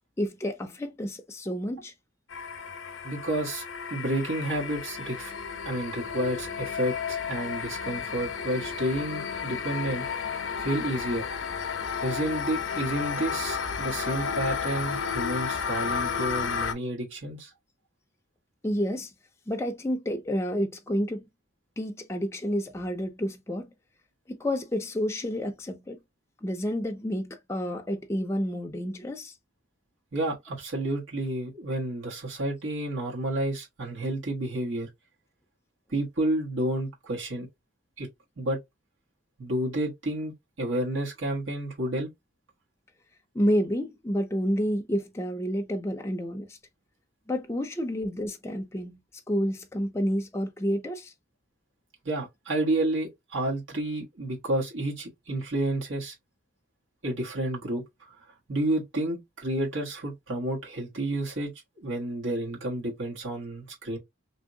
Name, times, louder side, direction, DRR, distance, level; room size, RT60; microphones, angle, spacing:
voice 1, 0.2-1.9 18.6-19.1 19.5-21.3 21.8-23.7 24.3-26.0 26.4-29.3 43.3-46.6 47.3-49.0 49.3-51.1, equal, 15° left, 0.4 m, -29 dB
sound 1, 2.3-16.7, left 6 dB, 75° left, 0.6 m, -32 dB
voice 2, 3.0-3.6 3.9-5.3 5.6-10.1 10.6-11.2 12.0-17.5 30.1-34.9 35.9-37.5 38.0-38.1 38.4-38.6 39.4-42.1 52.0-56.1 57.0-58.1 58.5-61.5 61.8-64.0, right 1 dB, 80° right, 1.3 m, -30 dB
2.9 x 2.7 x 2.6 m
head